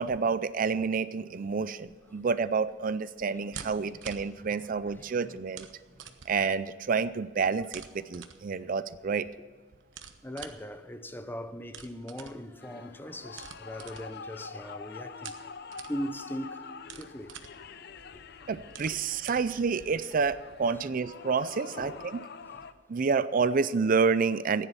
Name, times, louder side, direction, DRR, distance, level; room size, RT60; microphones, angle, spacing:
voice 1, 0.0-5.7 6.3-9.3 18.5-22.1 22.9-24.7, right 5 dB, 45° right, 0.4 m, -29 dB
sound 1, 1.8-20.4, right 7 dB, 75° right, 1.1 m, -50 dB
voice 2, 3.3-5.4 5.9-6.2 8.9-9.0 9.9-15.4 15.9-16.7 16.9-17.4 18.1-18.2 18.9-19.0 21.0-21.5 21.8-22.1 22.5-22.7, equal, 10° left, 0.7 m, -41 dB
sound 2, 12.6-22.7, left 5 dB, 55° left, 0.6 m, -46 dB
15.0 x 10.0 x 5.5 m
head